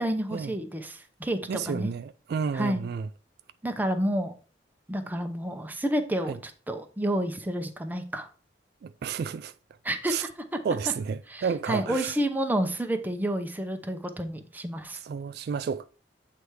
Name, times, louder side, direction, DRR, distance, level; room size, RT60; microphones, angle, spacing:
voice 1, 0.0-1.9 2.5-2.8 3.6-4.3 4.9-8.3 9.8-10.3 11.3-15.0, right 1 dB, 10° right, 0.7 m, -30 dB
voice 2, 1.5-3.1 6.3-6.4 8.8-9.5 10.1-10.2 10.6-12.1 14.9-15.9, right 6 dB, 60° right, 0.3 m, -31 dB
8.0 x 3.4 x 4.6 m
head